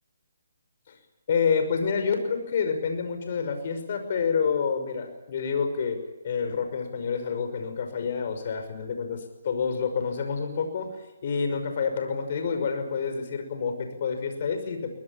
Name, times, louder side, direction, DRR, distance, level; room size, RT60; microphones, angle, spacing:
voice 1, 1.3-6.0 6.2-11.0 11.2-14.9, left 6 dB, 50° left, 7 dB, 5.9 m, -28 dB
23.0 x 20.0 x 8.9 m, 1.0 s
hypercardioid pair, 155°, 0 cm